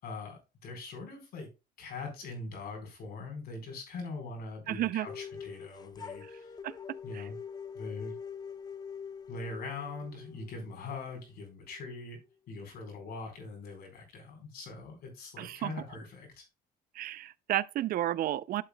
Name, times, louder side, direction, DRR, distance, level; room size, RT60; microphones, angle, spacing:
voice 1, 0.0-1.5 1.8-6.5 7.0-7.4 7.7-8.1 9.3-12.2 12.5-16.5, left 3 dB, 65° left, 4.3 m, -42 dB
voice 2, 4.7-5.1 6.2-6.3 6.6-6.7 7.1-7.3 15.4-15.7 16.9-18.6, right 13 dB, 60° right, 0.5 m, -32 dB
sound 1, 5.0-12.0, left 7 dB, 25° left, 0.6 m, -44 dB
11.5 x 7.2 x 2.2 m
cardioid pair, 110°, 17 cm